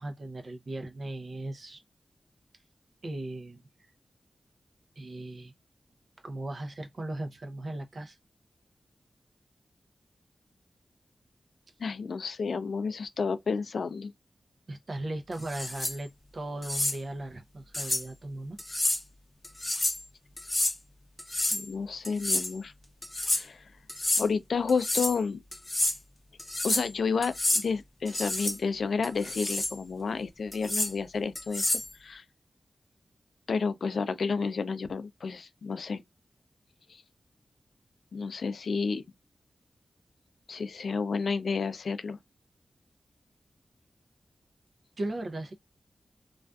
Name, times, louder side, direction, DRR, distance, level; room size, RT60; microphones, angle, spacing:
voice 1, 0.0-1.8 3.0-3.6 5.0-5.5 6.2-8.2 14.7-18.6 45.0-45.5, right 2 dB, 55° right, 0.5 m, -37 dB
voice 2, 11.8-14.1 21.5-22.7 23.3-23.6 24.2-25.4 26.6-31.6 32.0-32.2 33.5-36.0 38.1-39.0 40.5-42.2, left 5 dB, 80° left, 0.3 m, -31 dB
sound 1, 15.4-16.0 16.6-17.0 17.7-18.0 18.6-19.0 19.4-20.0 20.4-20.8 21.2-21.7 22.0-22.5 23.0-23.4 23.9-24.3 24.7-25.2 25.5-26.0 26.4-26.9 27.2-27.7 28.1-28.6 29.0-29.7 30.5-30.9 31.4-31.9, left 1 dB, 25° left, 0.6 m, -29 dB
2.5 x 2.3 x 2.2 m
wide cardioid pair, 90°, 0 cm